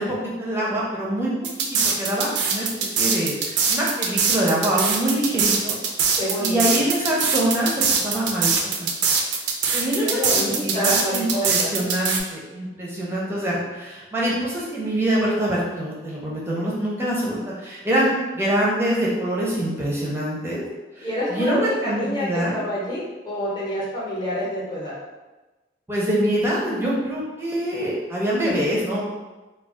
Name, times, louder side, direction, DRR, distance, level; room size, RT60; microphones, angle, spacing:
voice 1, 0.0-1.3 1.7-5.8 6.0-8.9 9.7-20.6 21.0-22.6 25.9-29.0, right 1 dB, 15° right, -5 dB, 0.5 m, -25 dB
sound 1, 1.4-12.2, right 5 dB, 80° right, 0.4 m, -22 dB
voice 2, 6.2-6.8 10.0-11.7 21.0-24.9, equal, 25° left, -6 dB, 0.7 m, -28 dB
2.3 x 2.3 x 3.6 m, 1.2 s
head